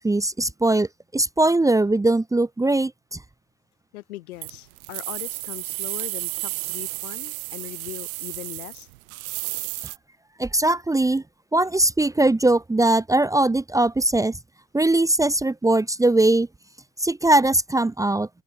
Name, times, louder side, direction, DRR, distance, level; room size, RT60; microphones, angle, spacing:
voice 1, 0.0-3.2 10.4-11.2 11.5-14.4 14.7-16.5 17.0-18.3, right 2 dB, 10° right, 1.1 m, -20 dB
voice 2, 3.9-8.9, left 17 dB, 80° left, 4.4 m, -39 dB
sound 1, 4.4-10.0, right 23 dB, 75° right, 1.1 m, -32 dB
supercardioid pair, 115°, 43 cm